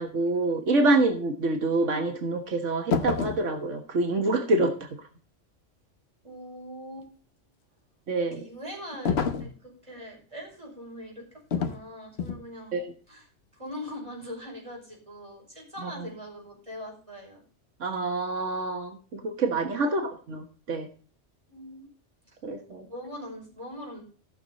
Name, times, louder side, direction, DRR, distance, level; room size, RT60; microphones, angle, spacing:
voice 1, 0.0-4.7 8.1-8.4 12.7-12.8 17.8-20.9 22.4-22.8, right 2 dB, 90° right, 5 dB, 1.7 m, -26 dB
sound 1, 2.9-3.5 9.1-9.6 11.5-11.8 12.2-12.5, left 6 dB, 60° left, 1.2 m, -27 dB
voice 2, 6.2-7.1 8.3-12.8 13.1-17.4 19.7-19.9 21.5-21.9 22.3-22.4 22.8-24.0, equal, 25° right, -1 dB, 5.6 m, -42 dB
15.5 x 6.6 x 4.1 m, 0.39 s
omnidirectional pair, 1.2 m